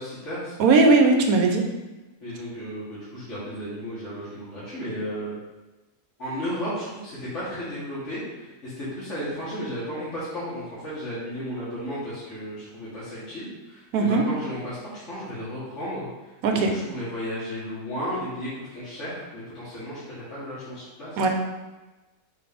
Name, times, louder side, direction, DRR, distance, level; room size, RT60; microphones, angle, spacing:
voice 1, 0.0-0.5 2.2-5.3 6.2-16.1 16.5-21.2, equal, 45° left, -11 dB, 1.9 m, -34 dB
voice 2, 0.6-1.6 13.9-14.2 16.4-16.7 21.2-21.3, right 3 dB, 65° right, 3 dB, 1.2 m, -18 dB
4.8 x 4.0 x 5.1 m, 1.1 s
omnidirectional pair, 1.7 m